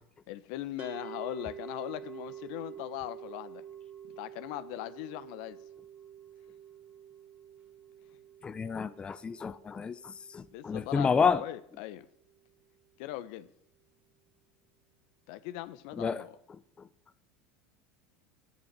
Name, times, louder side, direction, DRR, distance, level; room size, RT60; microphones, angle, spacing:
voice 1, 0.3-3.6 4.2-5.6 10.5-12.1 13.0-13.5 15.3-16.4, left 15 dB, 65° left, 1.1 m, -40 dB
sound 1, 0.8-11.9, right 9 dB, 40° right, 3.7 m, -48 dB
voice 2, 8.4-10.0 10.3-11.4 16.0-16.2, left 6 dB, 25° left, 0.7 m, -29 dB
11.5 x 11.0 x 9.6 m
hypercardioid pair, 90°, 4 cm